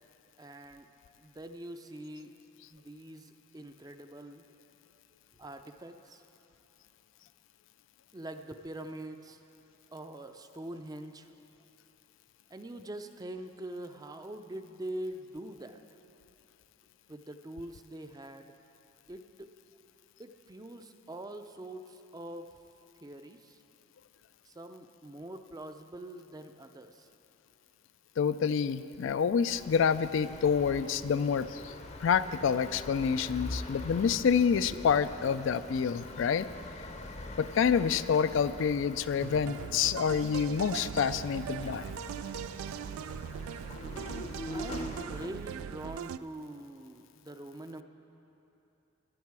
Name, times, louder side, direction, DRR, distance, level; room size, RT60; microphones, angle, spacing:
voice 1, 0.4-0.9 1.2-2.4 2.7-4.4 5.4-6.3 8.1-9.4 9.9-11.3 12.5-15.8 17.1-18.6 19.1-19.5 20.2-22.5 23.0-23.6 24.4-27.1 34.7-34.8 44.2-47.8, right 1 dB, 20° right, 8 dB, 0.4 m, -44 dB
voice 2, 28.2-31.7 32.0-36.5 37.4-41.8, left 6 dB, 65° left, 14 dB, 0.3 m, -28 dB
sound 1, 29.5-45.3, left 1 dB, 35° left, 0.6 m, -44 dB
sound 2, 39.2-46.2, right 8 dB, 90° right, 0.3 m, -40 dB
16.5 x 11.0 x 4.7 m, 3.0 s
head